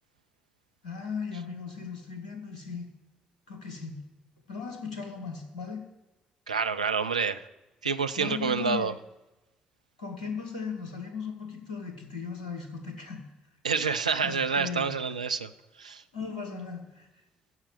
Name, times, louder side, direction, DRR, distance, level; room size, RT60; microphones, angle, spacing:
voice 1, 0.8-2.9 3.5-4.0 4.5-5.8 8.2-8.9 10.0-13.2 14.2-14.9 16.1-17.1, left 5 dB, 80° left, 4 dB, 1.4 m, -37 dB
voice 2, 6.5-7.4 7.8-8.9 13.6-15.5 15.8-16.0, right 5 dB, 85° right, 9 dB, 0.4 m, -28 dB
9.7 x 7.2 x 8.8 m, 1.0 s
figure-of-eight pair, 40°, 4 cm